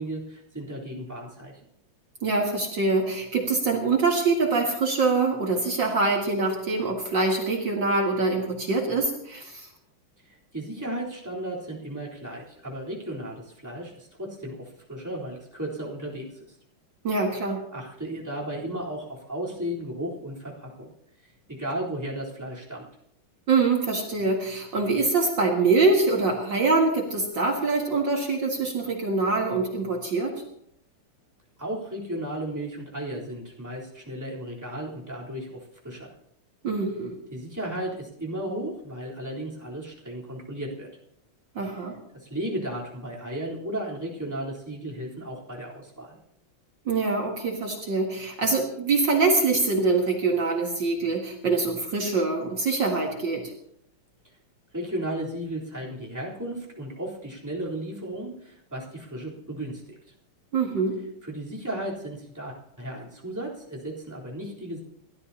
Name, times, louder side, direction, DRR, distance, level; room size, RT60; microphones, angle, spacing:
voice 1, 0.0-1.5 10.2-16.6 17.7-20.9 21.2-22.9 31.6-36.1 37.3-40.9 42.1-46.2 54.7-60.0 61.2-64.8, right 1 dB, 10° right, -4 dB, 3.7 m, -35 dB
voice 2, 2.2-9.7 17.0-17.7 23.5-30.4 36.6-37.2 41.6-42.0 46.9-53.5 60.5-61.0, right 3 dB, 60° right, 0 dB, 2.4 m, -24 dB
29.0 x 13.0 x 2.9 m, 0.73 s
omnidirectional pair, 2.4 m